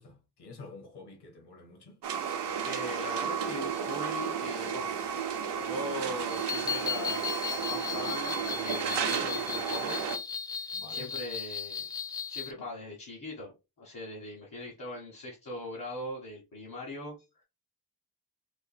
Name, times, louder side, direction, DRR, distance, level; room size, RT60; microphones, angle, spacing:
voice 1, 0.0-2.0 10.7-11.1, left 3 dB, 75° left, 1.3 m, -49 dB
sound 1, 2.0-10.2, right 7 dB, 80° right, 0.7 m, -33 dB
voice 2, 2.6-4.9 5.5-10.0 10.5-11.9 12.3-13.5 13.8-17.4, left 1 dB, 50° left, 1.2 m, -40 dB
sound 2, 6.3-12.5, left 6 dB, 10° left, 0.4 m, -36 dB
4.8 x 2.9 x 2.2 m
wide cardioid pair, 175°, 40 cm